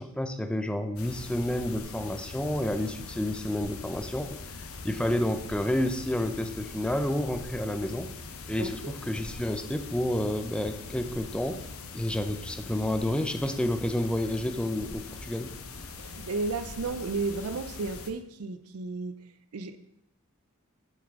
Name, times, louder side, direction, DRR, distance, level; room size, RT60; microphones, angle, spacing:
voice 1, 0.0-8.1 8.5-11.6 11.9-15.5, left 1 dB, 5° left, 8 dB, 0.5 m, -30 dB
sound 1, 1.0-18.1, left 4 dB, 70° left, 0.9 m, -42 dB
voice 2, 8.6-8.9 16.0-19.1 19.5-19.8, right 3 dB, 90° right, 11 dB, 0.5 m, -33 dB
7.9 x 7.4 x 3.6 m, 0.81 s
head